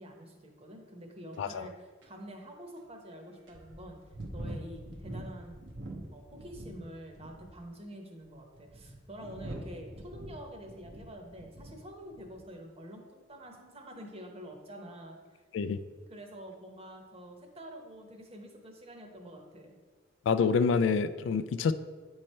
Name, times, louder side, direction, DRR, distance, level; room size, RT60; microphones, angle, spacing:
voice 1, 0.0-4.0 4.3-5.6 6.1-15.2 16.1-19.7, equal, 35° right, 2 dB, 0.9 m, -47 dB
sound 1, 1.3-1.4 2.0-2.1 2.8-2.9 3.5-6.8 7.1-7.6 8.3-11.8 12.1-12.4, right 1 dB, 70° right, 0.9 m, -44 dB
voice 2, 20.3-21.7, left 5 dB, 75° left, 12 dB, 0.3 m, -27 dB
8.7 x 3.2 x 4.3 m, 1.4 s
head